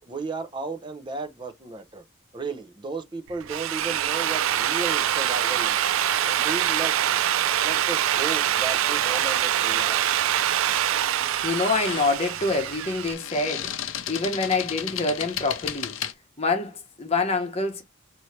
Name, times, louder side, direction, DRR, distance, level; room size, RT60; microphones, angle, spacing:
voice 1, 0.1-2.0 2.3-5.9 6.3-7.2 7.6-10.2, right 3 dB, 25° right, 0.6 m, -34 dB
Drill, 3.3-13.1, right 11 dB, 90° right, 0.4 m, -24 dB
sound 1, 9.8-10.0 11.5-16.1, left 10 dB, 85° left, 0.6 m, -34 dB
voice 2, 11.4-13.7 14.1-15.9 16.4-17.8, left 3 dB, 30° left, 1.0 m, -26 dB
4.4 x 2.8 x 3.2 m
head